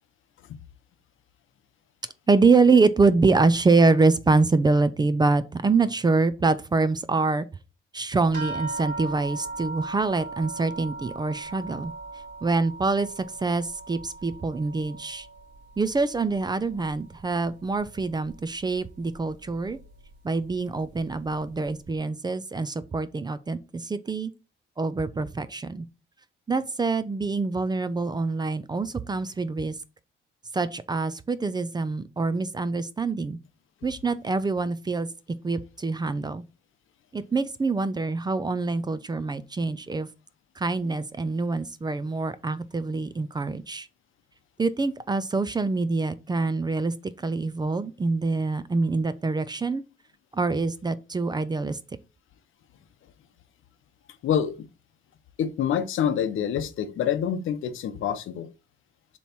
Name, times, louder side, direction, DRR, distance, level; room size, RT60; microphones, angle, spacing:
voice 1, 2.3-7.5 7.9-11.9 12.4-15.3 15.8-19.8 20.2-24.3 24.8-25.9 26.5-29.8 30.5-33.4 33.8-35.1 35.4-36.4 37.1-40.1 40.6-43.9 44.6-49.8 50.3-51.8, right 3 dB, 20° right, 0.4 m, -25 dB
sound 1, 8.3-17.2 17.5-18.4 19.1-19.2 19.6-19.8, right 3 dB, 50° right, 2.9 m, -39 dB
voice 2, 54.2-54.5 55.4-58.5, left 8 dB, 70° left, 0.8 m, -26 dB
6.9 x 3.1 x 4.3 m
cardioid pair, 115°, 21 cm